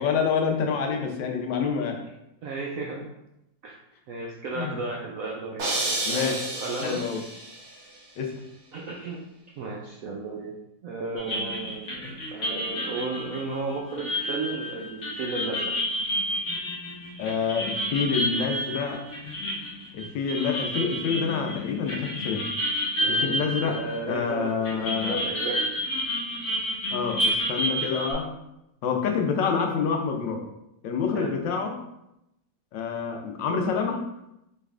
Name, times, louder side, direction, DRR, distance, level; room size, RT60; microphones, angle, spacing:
voice 1, 0.0-2.0 4.5-4.7 6.1-6.5 6.8-7.2 8.2-8.3 17.2-19.0 19.9-22.5 23.1-23.8 24.1-25.2 26.9-28.2 28.8-30.4 30.8-31.7 32.7-34.0, left 6 dB, 85° left, 3 dB, 1.4 m, -27 dB
voice 2, 2.4-3.1 3.6-3.7 4.1-7.0 8.7-9.2 9.6-10.5 10.8-15.7 23.0-25.8 31.1-31.4, right 3 dB, 80° right, -1 dB, 0.7 m, -34 dB
sound 1, 5.6-7.7, right 2 dB, 60° right, 1.4 m, -30 dB
sound 2, 11.2-24.3 24.6-28.1, equal, 50° left, 1.0 m, -30 dB
5.0 x 3.2 x 2.4 m, 0.85 s
omnidirectional pair, 2.0 m